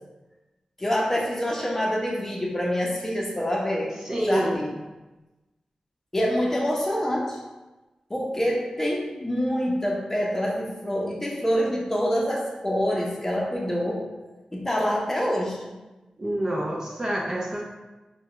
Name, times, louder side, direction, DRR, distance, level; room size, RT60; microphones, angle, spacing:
voice 1, 0.8-4.7 6.1-7.4 8.1-14.0 14.5-15.7, equal, 15° left, -3 dB, 0.7 m, -26 dB
voice 2, 4.0-4.6 16.2-17.6, right 1 dB, 25° right, -3 dB, 0.5 m, -27 dB
4.6 x 2.3 x 3.0 m, 1.1 s
wide cardioid pair, 115°, 2 cm